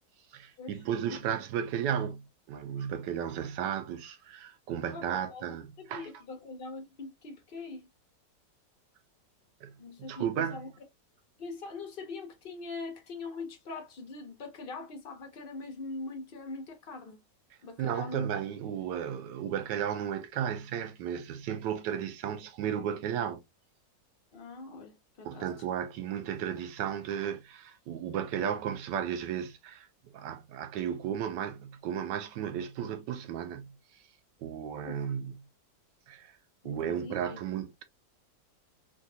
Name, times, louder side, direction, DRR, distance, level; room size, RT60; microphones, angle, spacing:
voice 1, 0.3-6.1 9.6-9.7 10.0-10.6 17.8-23.4 25.2-33.8 34.4-35.4 36.1-36.4 36.6-37.8, right 9 dB, 75° right, 1.2 m, -34 dB
voice 2, 4.9-7.8 9.8-10.7 11.4-17.2 17.6-18.3 24.3-25.5 34.8-35.1 36.6-37.4, left 3 dB, 70° left, 0.5 m, -42 dB
3.8 x 2.3 x 2.6 m
omnidirectional pair, 2.0 m